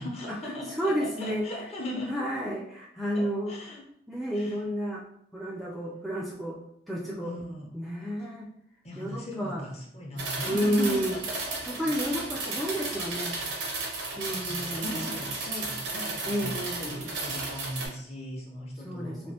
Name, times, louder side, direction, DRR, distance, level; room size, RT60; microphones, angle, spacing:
voice 1, 0.0-2.2 3.1-3.9 4.3-4.6 7.2-7.7 8.8-11.8 13.9-19.3, left 1 dB, 35° left, -1 dB, 0.7 m, -38 dB
voice 2, 0.8-1.5 2.1-3.5 4.1-5.0 5.3-6.6 6.9-7.3 7.7-8.5 9.0-9.7 10.4-11.2 11.7-13.4 14.2-15.2 16.2-17.1 18.8-19.3, equal, ahead, -5 dB, 0.3 m, -31 dB
sound 1, 10.2-17.9, right 3 dB, 85° right, 0.8 m, -34 dB
3.0 x 2.5 x 2.8 m, 0.72 s
head